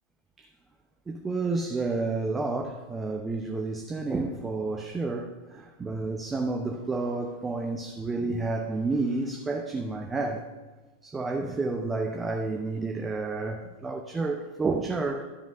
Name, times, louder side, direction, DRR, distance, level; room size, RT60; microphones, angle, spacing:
voice 1, 1.1-10.5 11.0-15.3, right 3 dB, 15° right, 0.7 m, -30 dB
11.0 x 5.2 x 5.4 m
figure-of-eight pair, 90°, 0 cm